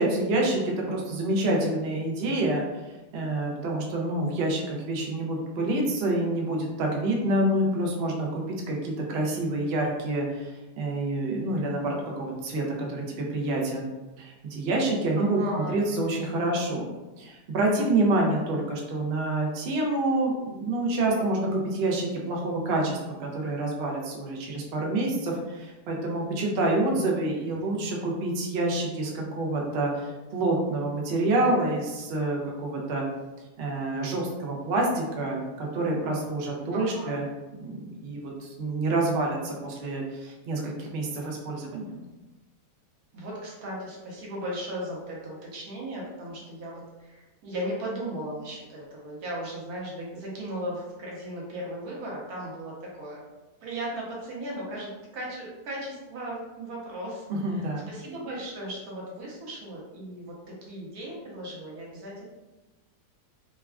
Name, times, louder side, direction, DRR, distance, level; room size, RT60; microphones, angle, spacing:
voice 1, 0.0-13.9 14.2-16.9 17.2-33.0 33.6-37.3 37.6-42.0 57.3-57.9, right 2 dB, 85° right, -1 dB, 0.5 m, -27 dB
voice 2, 15.2-15.8 36.7-37.2 43.1-53.2 53.6-57.2 57.5-62.2, right 1 dB, 70° right, -4 dB, 1.3 m, -36 dB
3.2 x 2.3 x 2.3 m, 1.1 s
omnidirectional pair, 1.8 m